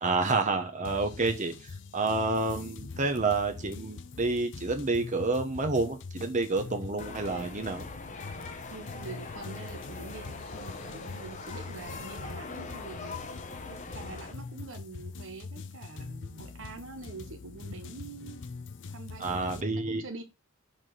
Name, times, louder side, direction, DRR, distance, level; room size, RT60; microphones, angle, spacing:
voice 1, 0.0-7.9 19.2-20.0, right 3 dB, 35° right, 5 dB, 1.0 m, -29 dB
sound 1, 0.8-19.6, left 4 dB, 60° left, 0.6 m, -44 dB
sound 2, 7.0-14.3, left 3 dB, 35° left, 1.0 m, -42 dB
voice 2, 8.7-18.4 18.9-20.2, right 3 dB, 65° right, 5 dB, 1.0 m, -45 dB
5.9 x 4.8 x 6.6 m, 0.28 s
head